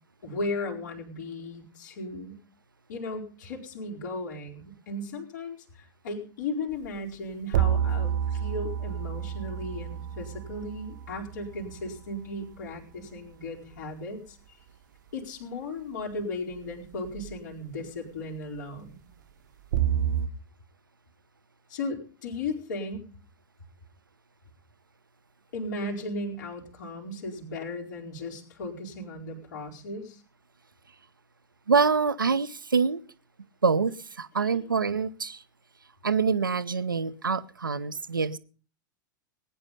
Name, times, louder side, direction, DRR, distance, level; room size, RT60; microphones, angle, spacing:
voice 1, 0.2-2.4 2.9-14.4 15.1-19.0 21.7-23.1 25.5-30.2 34.5-34.6, left 2 dB, 60° left, -3 dB, 4.6 m, -36 dB
sound 1, 6.7-6.8 7.5-12.0 17.0-17.3 19.7-20.3, right 10 dB, 60° right, 1.1 m, -29 dB
voice 2, 31.7-33.0 33.6-35.4 36.0-38.4, right 5 dB, 80° right, 15 dB, 0.9 m, -25 dB
19.5 x 10.0 x 5.5 m, 0.40 s
figure-of-eight pair, 90°, 11 cm